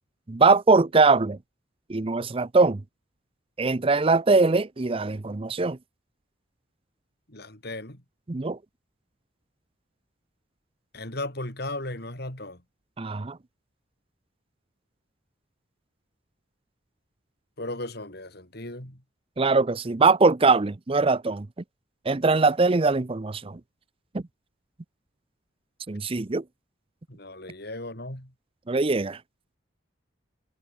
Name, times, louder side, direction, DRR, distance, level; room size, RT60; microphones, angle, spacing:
voice 1, 0.3-1.4 1.9-2.8 3.6-5.8 8.3-8.6 13.0-13.4 19.4-21.5 22.1-23.6 24.1-24.2 25.9-26.4 28.7-29.2, right 3 dB, 30° right, 0.6 m, -22 dB
voice 2, 7.3-8.0 10.9-12.6 17.6-19.0 27.1-28.3, left 2 dB, 55° left, 6.2 m, -36 dB
head